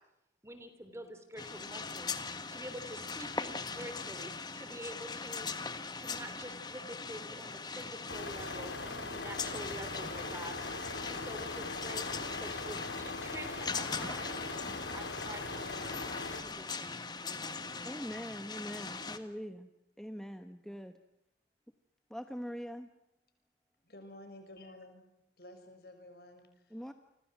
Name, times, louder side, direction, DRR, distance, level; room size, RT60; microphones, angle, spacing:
voice 1, 0.4-2.1 2.5-5.5 6.0-12.1 12.4-14.6 14.9-18.1, right 1 dB, 15° right, 9 dB, 3.2 m, -47 dB
sound 1, 1.4-19.2, left 4 dB, 25° left, 1.6 m, -41 dB
sound 2, 8.1-16.4, left 3 dB, 80° left, 4.0 m, -41 dB
voice 2, 17.8-19.7 20.0-21.0 22.1-22.9 26.7-26.9, equal, 5° left, 7 dB, 1.0 m, -43 dB
voice 3, 23.8-25.1 25.4-26.9, left 1 dB, 55° left, 7 dB, 6.6 m, -52 dB
29.5 x 26.0 x 6.1 m, 0.83 s
head